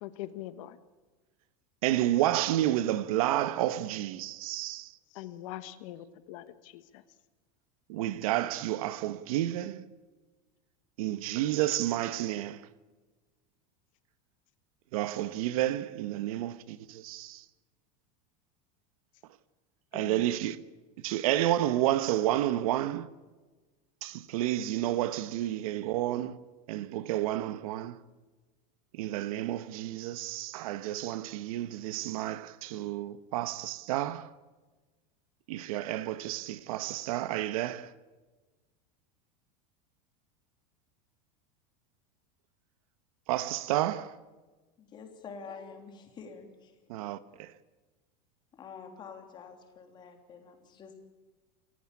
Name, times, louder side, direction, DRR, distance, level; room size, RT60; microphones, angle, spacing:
voice 1, 0.0-0.8 5.1-6.8 19.9-20.4, left 14 dB, 60° left, 1.4 m, -42 dB
voice 2, 1.8-4.9 7.9-9.9 11.0-12.6 14.9-17.4 19.9-20.6 21.0-23.1 24.0-26.4 26.7-28.0 29.0-34.3 35.5-37.9 43.3-44.1 46.9-47.5, right 13 dB, 65° right, 1.2 m, -30 dB
voice 3, 44.8-46.7 48.5-50.9, left 5 dB, 25° left, 3.2 m, -47 dB
28.0 x 14.5 x 8.6 m
supercardioid pair, 170°, 19 cm